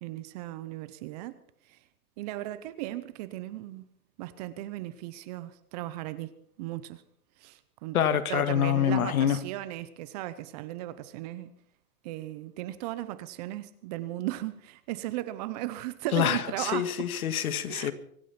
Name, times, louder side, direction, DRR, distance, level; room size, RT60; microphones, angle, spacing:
voice 1, 0.0-1.4 1.7-1.8 2.2-3.9 4.2-6.3 6.6-7.0 7.4-8.0 8.3-11.5 12.0-17.1 17.7-17.9, right 15 dB, 25° right, 0.7 m, -36 dB
voice 2, 7.9-9.4 16.1-17.9, left 9 dB, 70° left, 1.7 m, -26 dB
24.5 x 9.1 x 5.8 m
hypercardioid pair, 145°, 45 cm